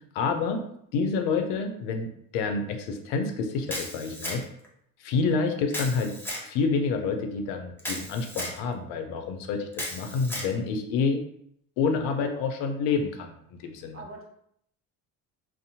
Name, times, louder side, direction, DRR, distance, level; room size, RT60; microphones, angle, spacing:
voice 1, 0.1-0.7 0.9-4.4 5.0-6.1 6.4-11.2 11.8-14.0, left 4 dB, 85° left, 6 dB, 0.6 m, -28 dB
Camera, 3.7-4.7 5.7-6.5 7.8-8.6 9.7-10.5, left 1 dB, 5° left, 0.7 m, -35 dB
voice 2, 13.9-14.2, right 1 dB, 30° right, 0 dB, 0.9 m, -42 dB
2.6 x 2.1 x 2.7 m, 0.70 s
supercardioid pair, 70°, 45 cm